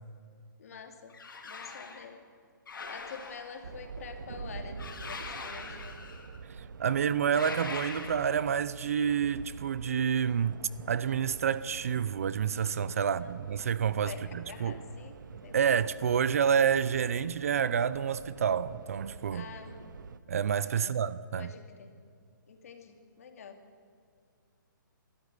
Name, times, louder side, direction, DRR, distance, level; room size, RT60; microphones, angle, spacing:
voice 1, 0.6-1.1 1.4-2.2 2.9-6.0 13.0-13.3 14.0-15.2 15.4-15.7 19.3-19.8 20.7-20.9 21.4-21.9 22.5-23.6, left 6 dB, 45° left, 2.6 m, -47 dB
sound 1, 1.1-2.1 2.7-3.7 4.8-6.4 7.2-8.5, left 4 dB, 75° left, 3.6 m, -42 dB
sound 2, 3.6-20.2, right 5 dB, 65° right, 1.2 m, -46 dB
voice 2, 6.6-10.6 10.9-14.8 15.5-19.5 20.3-21.5, right 7 dB, 45° right, 0.6 m, -29 dB
23.0 x 13.5 x 9.8 m
hypercardioid pair, 170°, 11 cm